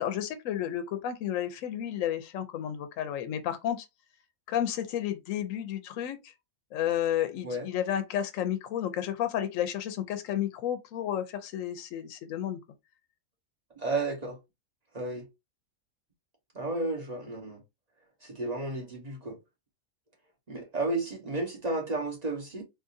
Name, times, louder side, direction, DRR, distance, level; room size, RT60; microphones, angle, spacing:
voice 1, 0.0-3.9 4.5-6.3 6.7-12.6, left 10 dB, 75° left, 0.9 m, -32 dB
voice 2, 13.8-14.4 14.9-15.2 16.5-17.6 18.2-19.4 20.5-22.6, right 2 dB, 30° right, 1.2 m, -32 dB
3.7 x 2.5 x 2.5 m
omnidirectional pair, 1.4 m